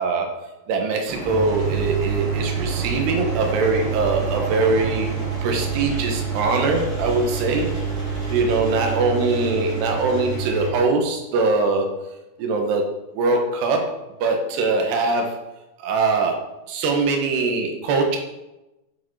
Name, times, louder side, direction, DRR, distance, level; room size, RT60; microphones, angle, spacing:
voice 1, 0.0-5.1 5.4-7.7 8.3-12.0 12.4-15.4 15.8-18.2, right 3 dB, 70° right, 3 dB, 3.2 m, -22 dB
sound 1, 1.1-9.0, right 2 dB, 85° right, 1.4 m, -34 dB
Engine, 1.3-10.7, right 6 dB, 20° right, 2.1 m, -27 dB
8.8 x 7.0 x 4.8 m, 0.96 s
omnidirectional pair, 5.4 m